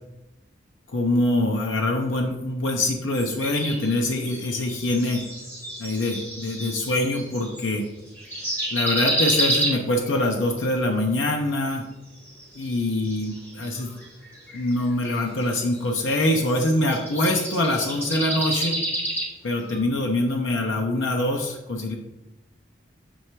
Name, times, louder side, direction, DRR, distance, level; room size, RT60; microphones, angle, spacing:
voice 1, 0.9-5.2 5.8-7.9 8.7-11.8 12.6-13.9 14.5-18.8 19.4-22.0, left 1 dB, 90° left, 2 dB, 0.7 m, -24 dB
sound 1, 3.1-7.7 8.1-10.2 12.2-19.2 19.7-19.8, right 1 dB, 10° left, 1.6 m, -30 dB
7.1 x 3.3 x 4.5 m, 0.95 s
head